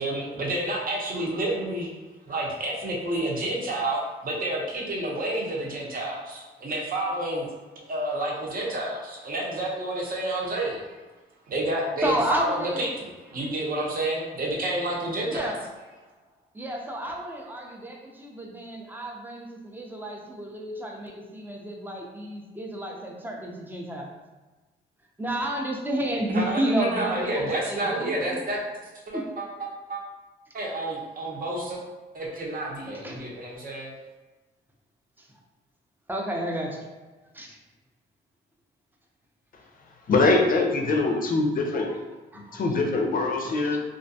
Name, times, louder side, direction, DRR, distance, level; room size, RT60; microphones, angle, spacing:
voice 1, 0.0-1.9 2.3-7.5 7.9-11.0 11.5-15.5 26.3-28.6 29.1-29.4 29.9-30.0 30.5-31.8 32.1-33.9, right 1 dB, 45° right, -3 dB, 0.8 m, -29 dB
voice 2, 12.0-12.9 15.3-15.6 16.5-24.1 25.2-28.4 29.1-29.3 33.0-33.2 35.2-35.3 36.1-36.9 37.3-37.6 41.6-42.0 42.3-42.6 43.4-43.8, right 1 dB, 10° right, 0 dB, 0.5 m, -31 dB
voice 3, 40.1-41.9 42.3-43.8, left 3 dB, 45° left, 2 dB, 0.5 m, -23 dB
2.4 x 2.2 x 2.6 m, 1.2 s
cardioid pair, 90°, 20 cm